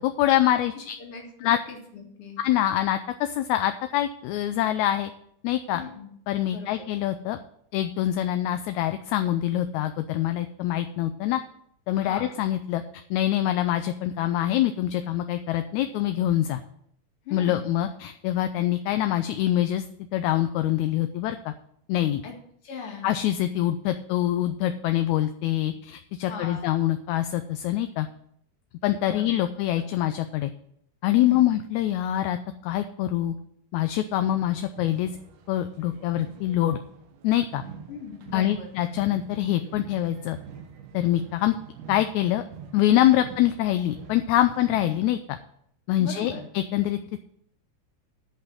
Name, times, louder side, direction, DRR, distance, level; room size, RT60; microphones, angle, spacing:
voice 1, 0.0-1.0 1.4-1.6 2.4-5.1 5.4-5.8 6.3-7.4 7.7-11.4 11.9-16.6 17.3-19.8 20.1-21.5 21.9-22.2 23.0-28.1 28.8-30.5 31.0-32.4 32.6-33.3 33.7-35.1 35.5-36.8 37.2-37.6 38.3-40.4 40.9-41.6 41.9-42.4 42.7-45.4 45.9-47.2, left 13 dB, 80° left, 8 dB, 1.8 m, -25 dB
voice 2, 1.0-2.4 5.7-6.1 6.5-6.8 12.0-12.3 17.2-17.7 22.2-22.3 22.6-23.1 26.2-26.7 29.1-29.5 31.2-31.5 37.9-38.8 43.1-43.3 46.0-46.4, left 6 dB, 50° left, 0 dB, 2.6 m, -39 dB
sound 1, 34.2-45.0, right 6 dB, 85° right, 2.7 m, -46 dB
10.5 x 5.6 x 7.6 m, 0.69 s
omnidirectional pair, 3.6 m